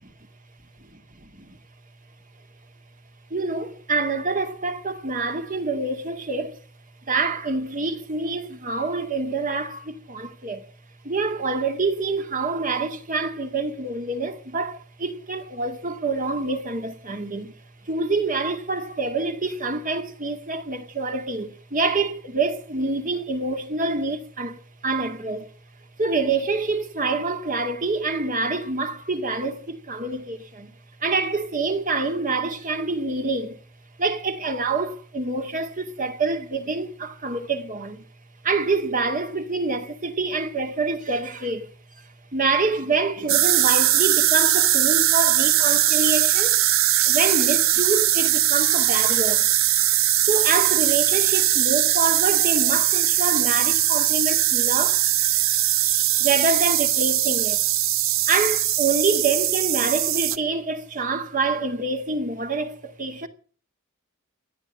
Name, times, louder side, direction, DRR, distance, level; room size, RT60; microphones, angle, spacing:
voice 1, 3.3-6.6 7.1-10.7 11.0-17.5 17.8-25.5 26.0-30.7 31.0-33.6 34.0-38.1 38.4-41.7 42.0-46.6 47.1-49.5 50.3-55.1 56.2-57.6 58.3-63.3, right 3 dB, 40° right, 2.2 m, -26 dB
sound 1, 43.3-60.4, right 13 dB, 75° right, 1.0 m, -20 dB
16.5 x 11.0 x 7.7 m
head